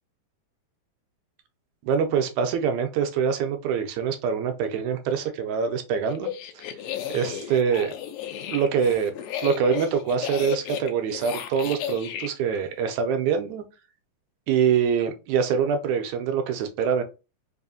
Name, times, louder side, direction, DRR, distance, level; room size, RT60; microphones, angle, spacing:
voice 1, 1.8-6.3 6.6-6.7 7.1-7.9 8.5-9.1 9.4-13.6 14.5-17.0, right 7 dB, 80° right, 6 dB, 1.8 m, -24 dB
sound 1, 6.1-12.3, left 10 dB, 85° left, 1.5 m, -34 dB
4.7 x 2.6 x 2.5 m, 0.30 s
omnidirectional pair, 3.5 m